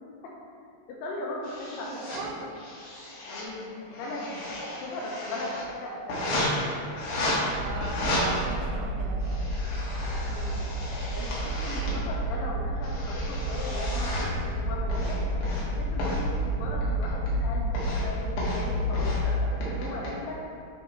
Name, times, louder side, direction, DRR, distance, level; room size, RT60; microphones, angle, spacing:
voice 1, 0.9-2.3 3.3-6.6 10.2-10.6 11.1-15.2 15.7-20.4, left 2 dB, 80° left, -2 dB, 2.6 m, -38 dB
sound 1, 1.4-2.2 2.6-3.4 3.8-5.6 6.1-6.5 7.0-7.4 7.8-8.2 9.0-12.0 12.6-14.3 14.9-15.6 16.0-16.2 16.8-17.4 17.7-18.1 18.4-18.6 18.9-19.2 19.6-20.1, left 1 dB, 60° left, 2.6 m, -34 dB
voice 2, 1.9-2.5 7.6-9.6, right 4 dB, 80° right, 1 dB, 2.9 m, -38 dB
sound 2, 7.5-19.3, equal, 60° right, 2.3 m, -30 dB
9.4 x 3.4 x 4.5 m, 2.3 s
omnidirectional pair, 5.0 m